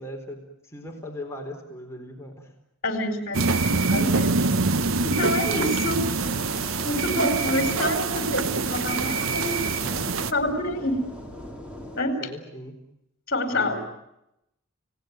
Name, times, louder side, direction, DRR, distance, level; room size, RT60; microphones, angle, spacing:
voice 1, 0.0-2.5 7.4-7.9 9.7-10.1 12.2-12.8 13.5-13.9, left 1 dB, 15° left, 1 dB, 4.1 m, -39 dB
voice 2, 2.8-4.3 5.0-6.0 6.8-9.7 10.3-11.0 12.0-12.2 13.3-13.9, left 1 dB, 45° left, 7 dB, 4.2 m, -27 dB
sound 1, 3.3-10.3, right 4 dB, 65° right, 1.0 m, -25 dB
sound 2, 6.2-12.0, left 1 dB, 5° right, 3.7 m, -40 dB
29.5 x 18.0 x 9.4 m, 0.84 s
head